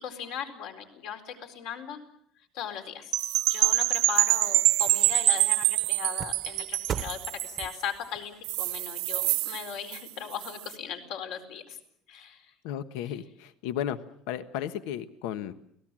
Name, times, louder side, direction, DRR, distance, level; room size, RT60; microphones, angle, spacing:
voice 1, 0.0-2.0 2.5-3.1 3.5-11.8 12.1-12.5, left 8 dB, 65° left, 6 dB, 4.4 m, -38 dB
Percussion / Wind chime, 3.1-7.8, right 17 dB, 60° right, 0.9 m, -25 dB
sound 1, 3.2-6.3 7.0-7.8 8.4-10.8, right 21 dB, 85° right, 1.2 m, -36 dB
sound 2, 3.9-10.4 10.8-10.9, right 9 dB, 30° right, 0.9 m, -43 dB
voice 2, 12.6-14.0 14.3-15.5, left 10 dB, 80° left, 11 dB, 1.3 m, -34 dB
29.5 x 19.0 x 7.6 m, 0.70 s
cardioid pair, 170°, 0 cm